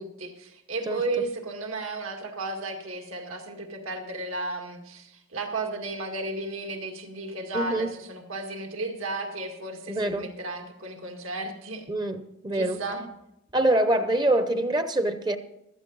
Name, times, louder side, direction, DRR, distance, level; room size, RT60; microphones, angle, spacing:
voice 1, 0.0-11.9 12.5-13.1, right 2 dB, 75° right, 2.0 m, -34 dB
voice 2, 7.5-8.0 9.9-10.3 11.9-12.8 13.5-15.4, right 1 dB, 20° right, 0.7 m, -25 dB
15.0 x 13.0 x 4.0 m
head